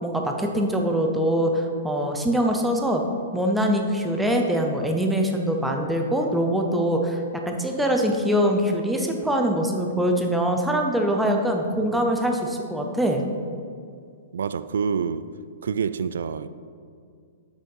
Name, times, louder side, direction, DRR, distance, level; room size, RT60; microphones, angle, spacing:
voice 1, 0.0-3.0 3.3-13.2, equal, ahead, 2 dB, 0.5 m, -23 dB
voice 2, 11.7-12.1 14.3-15.3 15.6-16.5, right 6 dB, 85° right, 14 dB, 0.3 m, -27 dB
6.6 x 6.1 x 5.4 m, 2.2 s
hypercardioid pair, 175°, 0 cm